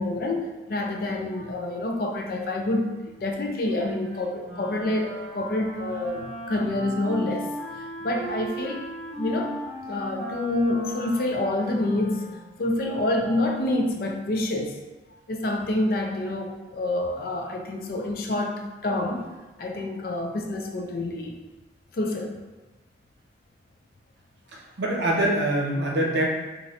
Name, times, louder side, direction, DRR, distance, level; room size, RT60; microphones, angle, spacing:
voice 1, 0.0-7.5 7.8-8.8 9.2-9.6 9.9-14.8 15.3-19.3 19.6-21.4 21.9-22.4, left 1 dB, 50° left, 2 dB, 0.4 m, -27 dB
Wind instrument woodwind instrument, 4.4-12.7, right 1 dB, 40° right, 1.1 m, -37 dB
voice 2, 24.5-26.3, right 1 dB, 75° right, -2 dB, 0.7 m, -24 dB
3.1 x 2.5 x 2.7 m, 1.2 s
head